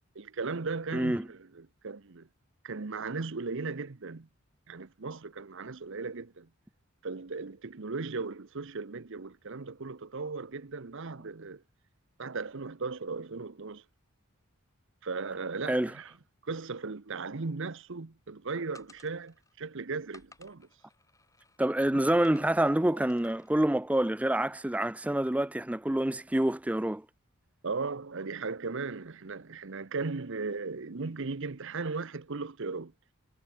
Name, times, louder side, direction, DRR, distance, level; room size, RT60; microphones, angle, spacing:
voice 1, 0.1-2.3 2.6-4.3 4.7-6.5 7.0-11.6 12.2-13.8 15.0-16.1 16.4-20.7 21.9-22.0 22.9-23.0 27.6-32.9, right 4 dB, 60° right, 0.8 m, -37 dB
voice 2, 0.9-1.2 15.7-15.9 21.6-27.0, right 1 dB, 5° right, 0.4 m, -27 dB
sound 1, 18.7-19.5 20.1-21.6 22.1-22.6 23.1-23.5, left 3 dB, 15° left, 4.5 m, -57 dB
head